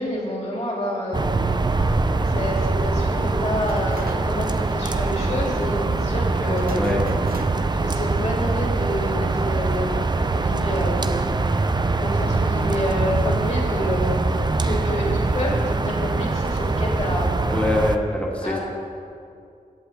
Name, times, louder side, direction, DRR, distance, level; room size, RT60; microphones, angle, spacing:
voice 1, 0.0-1.4 2.2-6.9 7.7-11.2 11.4-11.6 12.0-14.2 14.6-17.5 18.4-18.6, left 1 dB, 50° left, -4 dB, 2.9 m, -28 dB
sound 1, 1.1-18.0, right 3 dB, 30° right, 0.4 m, -23 dB
sound 2, 3.7-4.5 4.8-4.9 6.5-7.9, right 5 dB, 80° right, 0.6 m, -39 dB
voice 2, 17.5-18.6, left 1 dB, 10° left, -2 dB, 1.9 m, -23 dB
17.0 x 7.7 x 3.5 m, 2.5 s
wide cardioid pair, 80°, 15 cm